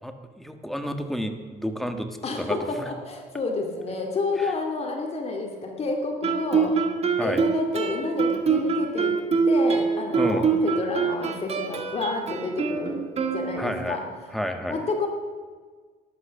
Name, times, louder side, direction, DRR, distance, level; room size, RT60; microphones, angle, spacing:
voice 1, 0.0-2.1 2.4-2.9 4.4-4.5 7.2-7.4 10.2-10.5 13.6-14.0 14.3-14.8, equal, ahead, 6 dB, 1.5 m, -30 dB
voice 2, 2.2-6.7 7.2-9.2 9.5-13.1 13.3-14.0 14.7-15.1, left 3 dB, 40° left, 2 dB, 2.5 m, -30 dB
Guitar, 6.2-13.9, right 5 dB, 40° right, 1.7 m, -25 dB
14.0 x 11.0 x 6.6 m, 1.5 s
cardioid pair, 110°, 17 cm